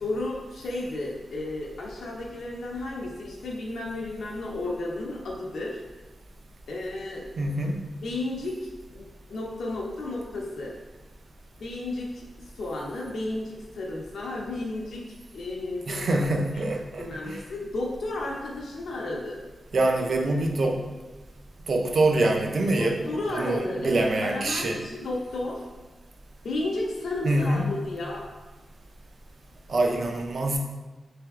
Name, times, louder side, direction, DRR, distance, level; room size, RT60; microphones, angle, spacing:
voice 1, 0.0-5.8 6.7-7.2 8.0-10.7 11.6-12.2 12.6-15.0 15.3-16.2 16.5-16.7 17.0-19.4 22.8-25.6 26.4-28.2, left 2 dB, 80° left, -2 dB, 0.6 m, -33 dB
voice 2, 7.4-7.8 15.9-17.4 19.7-20.8 21.7-24.8 27.2-27.7 29.7-30.6, right 2 dB, 45° right, 2 dB, 0.5 m, -25 dB
3.3 x 3.2 x 3.5 m, 1.2 s
wide cardioid pair, 180°, 0 cm